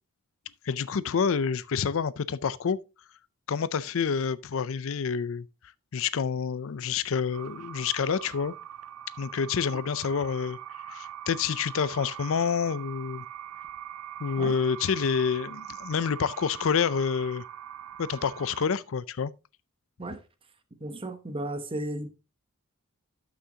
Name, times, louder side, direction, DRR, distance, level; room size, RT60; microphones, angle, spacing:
voice 1, 0.6-2.8 3.5-5.5 5.9-8.5 9.2-10.6 10.9-13.3 14.2-17.4 18.0-19.3, left 6 dB, 60° left, 0.4 m, -28 dB
sound 1, 7.3-18.7, right 10 dB, 85° right, 0.5 m, -42 dB
voice 2, 20.8-22.1, right 1 dB, 25° right, 0.9 m, -34 dB
12.5 x 6.3 x 2.8 m
head